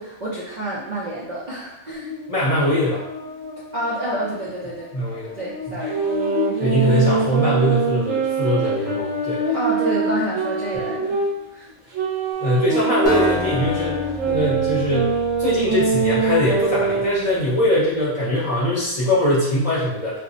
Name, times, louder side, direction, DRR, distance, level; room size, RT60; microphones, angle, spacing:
voice 1, 0.0-2.1 3.7-4.9 5.3-6.0 9.5-11.2 11.5-11.6, right 1 dB, 45° right, -9 dB, 0.6 m, -28 dB
Buzz, 2.0-11.5, left 4 dB, 85° left, 0.9 m, -33 dB
voice 2, 2.3-3.0 4.9-5.3 5.7-5.8 6.6-9.5 10.7-10.9 12.4-20.2, left 1 dB, 30° left, -8 dB, 0.9 m, -21 dB
sound 1, 5.8-11.3 11.9-17.3, right 4 dB, 85° right, 1.0 m, -23 dB
Acoustic guitar, 13.0-16.9, left 1 dB, 5° left, 0.6 m, -31 dB
2.5 x 2.1 x 3.8 m, 0.94 s
omnidirectional pair, 1.3 m